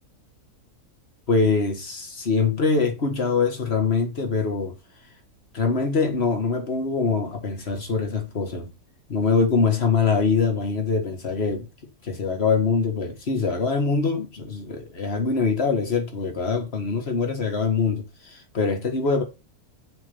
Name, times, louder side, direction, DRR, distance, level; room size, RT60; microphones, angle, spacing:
voice 1, 1.3-4.8 5.5-8.7 9.1-11.7 12.0-19.2, left 4 dB, 45° left, 2.0 m, -23 dB
6.9 x 5.7 x 5.4 m
omnidirectional pair, 1.6 m